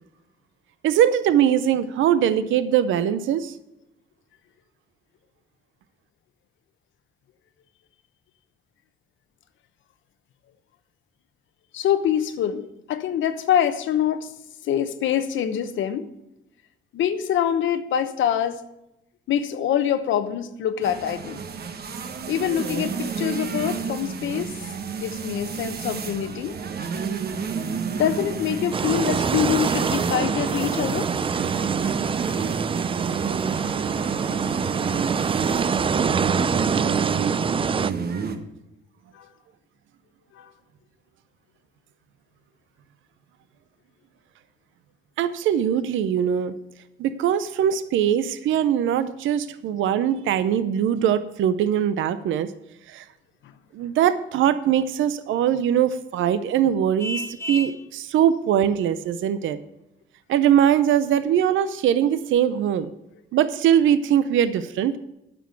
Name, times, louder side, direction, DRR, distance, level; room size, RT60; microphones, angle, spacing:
voice 1, 0.8-3.5 45.2-46.5 47.0-52.5 52.9-53.0 53.7-59.6 60.3-62.9 63.3-65.0, right 9 dB, 80° right, 13 dB, 0.6 m, -21 dB
voice 2, 11.7-14.3 14.6-16.1 16.9-18.6 19.3-21.4 22.3-24.5 25.0-26.6 27.9-31.1 39.1-39.3 40.3-40.5, left 9 dB, 75° left, 11 dB, 1.0 m, -25 dB
sound 1, 20.8-38.4, right 6 dB, 50° right, 1.2 m, -30 dB
sound 2, 28.7-37.9, right 6 dB, 25° right, 0.4 m, -25 dB
Vehicle horn car horn honking, 57.0-57.8, left 1 dB, 15° left, 0.6 m, -31 dB
9.2 x 6.2 x 8.3 m, 0.89 s
cardioid pair, 90°, 20 cm